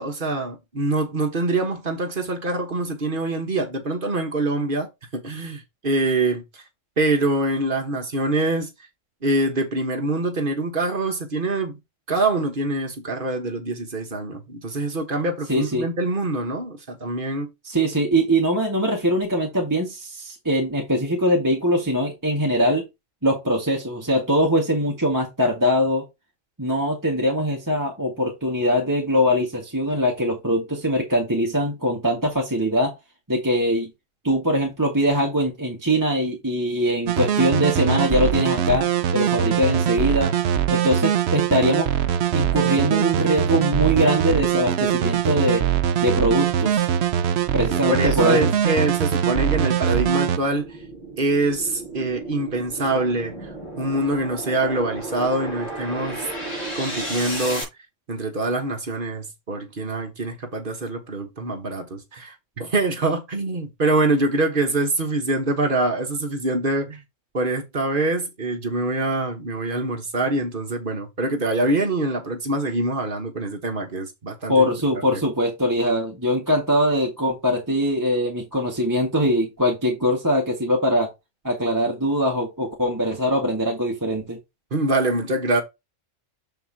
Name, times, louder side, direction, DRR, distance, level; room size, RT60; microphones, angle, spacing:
voice 1, 0.0-6.6 7.0-8.7 9.2-11.8 12.1-17.5 47.7-50.8 51.2-53.5 53.8-56.3 56.7-57.7 58.1-67.0 67.3-74.7 75.1-75.2 84.7-85.6, right 2 dB, 45° right, 1.4 m, -24 dB
voice 2, 15.5-15.9 17.6-22.9 23.2-26.1 26.6-32.9 33.3-33.9 34.2-38.9 39.1-40.3 40.7-41.9 42.3-45.6 46.0-46.9 47.5-48.5 74.5-81.1 81.4-84.4, equal, 15° right, 1.6 m, -22 dB
sound 1, 37.1-50.4, right 9 dB, 65° right, 0.8 m, -22 dB
sound 2, 47.5-57.6, right 1 dB, 30° left, 5.1 m, -35 dB
7.2 x 5.6 x 2.8 m
omnidirectional pair, 1.3 m